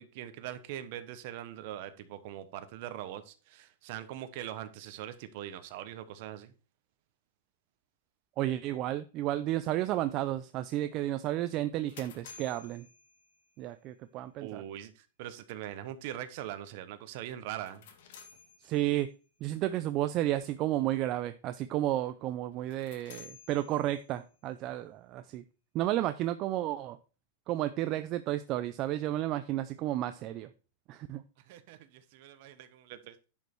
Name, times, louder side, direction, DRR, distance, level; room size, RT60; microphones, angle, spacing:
voice 1, 0.0-6.5 14.4-17.8 31.5-33.2, right 12 dB, 45° right, 1.0 m, -42 dB
voice 2, 8.4-12.9 13.6-14.6 18.6-19.1 19.4-25.4 25.7-27.0 27.5-30.5 30.9-31.2, right 14 dB, 30° right, 0.4 m, -32 dB
sound 1, 11.5-13.7 17.5-19.2 22.5-24.3, left 6 dB, 60° left, 1.8 m, -54 dB
10.5 x 5.4 x 4.5 m
supercardioid pair, 165°, 0 cm